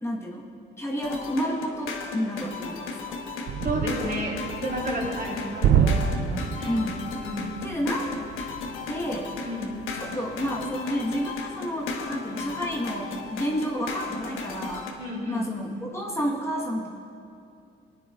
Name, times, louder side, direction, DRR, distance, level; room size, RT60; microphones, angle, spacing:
voice 1, 0.0-0.5 0.8-3.2 6.7-7.0 7.6-8.1 8.9-9.3 9.9-14.9 15.3-16.9, equal, 15° left, -3 dB, 1.3 m, -30 dB
sound 1, 1.0-14.9, left 4 dB, 85° left, 1.3 m, -35 dB
sound 2, 3.5-13.2 13.5-13.7 14.1-14.9, right 7 dB, 65° right, 0.5 m, -30 dB
voice 2, 3.6-6.8 7.2-7.5 9.4-9.8 15.0-15.5, right 1 dB, 45° right, -3 dB, 3.0 m, -32 dB
22.0 x 10.0 x 2.4 m, 2.5 s
cardioid pair, 90°, 20 cm